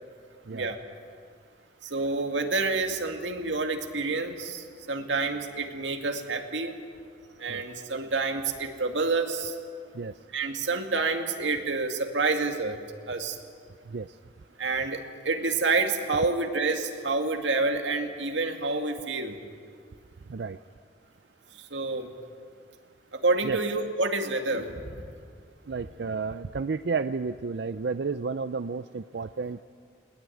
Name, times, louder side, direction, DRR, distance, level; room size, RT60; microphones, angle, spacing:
voice 1, 1.8-6.8 7.4-9.5 10.3-12.8 13.1-13.4 14.6-19.3 21.7-22.1 23.1-24.9, right 3 dB, 85° right, 5 dB, 2.1 m, -28 dB
voice 2, 13.9-14.2 20.3-20.6 23.4-23.6 25.7-29.6, right 4 dB, 70° right, 11 dB, 0.5 m, -31 dB
21.0 x 19.0 x 9.2 m, 2.1 s
head